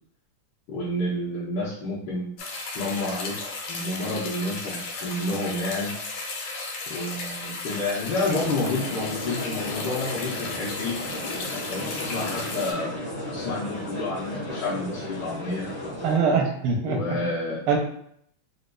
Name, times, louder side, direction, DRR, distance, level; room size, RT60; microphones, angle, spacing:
voice 1, 0.7-2.3 2.7-3.4 3.7-5.9 6.9-11.0 11.6-13.0 13.3-15.7 16.8-17.6, left 2 dB, 65° left, -8 dB, 1.3 m, -29 dB
sound 1, 2.4-12.7, left 3 dB, 85° left, 1.7 m, -35 dB
sound 2, 8.2-16.2, left 1 dB, 35° left, 0.6 m, -34 dB
voice 2, 16.0-17.0 17.7-17.8, right 5 dB, 90° right, 2 dB, 1.5 m, -22 dB
4.1 x 2.7 x 2.2 m, 0.68 s
omnidirectional pair, 2.4 m